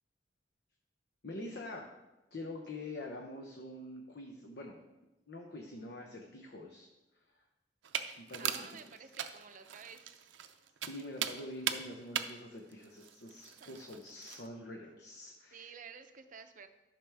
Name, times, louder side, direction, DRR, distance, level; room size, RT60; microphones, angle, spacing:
voice 1, 1.2-1.9 2.3-4.8 5.3-6.9 7.3-7.4 8.2-8.7 10.9-15.8, left 1 dB, 60° left, 2 dB, 0.8 m, -45 dB
sound 1, 7.8-14.5, right 9 dB, 90° right, 0.5 m, -40 dB
voice 2, 8.4-10.4 13.6-13.7 15.5-16.7, right 6 dB, 45° right, 8 dB, 0.6 m, -52 dB
12.0 x 5.9 x 3.4 m, 1.0 s
head